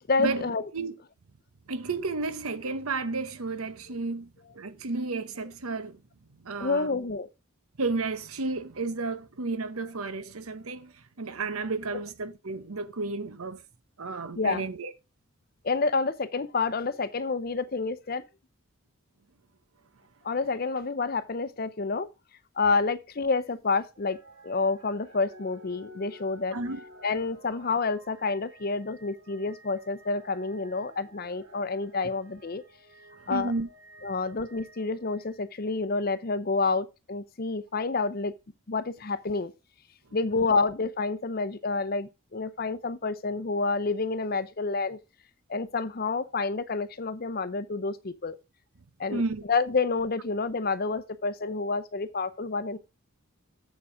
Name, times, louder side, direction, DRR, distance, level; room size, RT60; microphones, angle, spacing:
voice 1, 0.1-0.6 6.6-7.3 14.4-14.6 15.6-18.2 20.2-22.1 22.6-26.6 27.0-32.6 33.3-33.5 34.0-38.3 38.7-39.5 40.1-45.0 45.5-48.4 49.0-49.2 49.5-52.8, left 4 dB, 45° left, 0.6 m, -29 dB
voice 2, 1.7-6.0 6.4-7.0 7.8-13.6 14.0-14.9 26.5-26.8 33.2-33.7 49.1-49.4, right 3 dB, 85° right, 1.0 m, -32 dB
sound 1, 23.9-35.9 36.5-36.6, equal, 70° right, 3.8 m, -52 dB
7.6 x 7.0 x 4.9 m
head